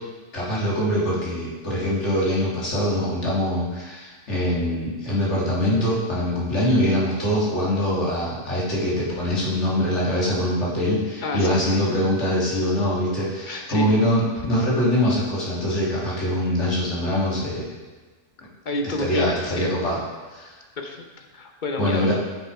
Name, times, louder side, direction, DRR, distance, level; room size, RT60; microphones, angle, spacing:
voice 1, 0.3-17.7 18.8-20.0 20.3-20.6 21.8-22.1, equal, 60° left, -6 dB, 2.5 m, -23 dB
voice 2, 11.2-11.8 13.5-13.9 18.4-19.8 20.4-20.5 20.8-22.1, left 2 dB, 45° left, 3 dB, 0.8 m, -30 dB
7.2 x 6.3 x 4.8 m, 1.3 s
omnidirectional pair, 1.4 m